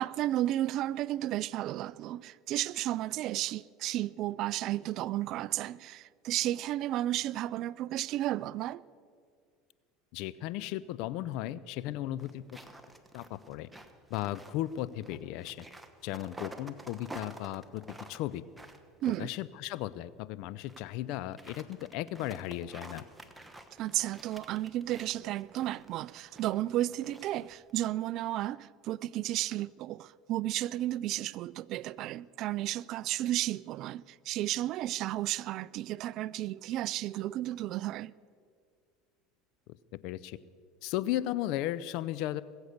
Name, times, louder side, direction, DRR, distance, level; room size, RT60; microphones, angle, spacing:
voice 1, 0.0-8.8 19.0-19.3 23.8-38.1, right 14 dB, 55° right, 0.3 m, -33 dB
voice 2, 10.1-12.4 13.1-13.7 14.1-15.7 16.0-17.8 18.1-18.4 19.2-23.0 39.9-40.4 40.8-42.4, left 14 dB, 65° left, 0.5 m, -35 dB
sound 1, 12.2-19.8 20.4-20.9 21.1-27.7, right 1 dB, 5° right, 1.2 m, -50 dB
20.5 x 8.1 x 6.6 m
supercardioid pair, 100°, 0 cm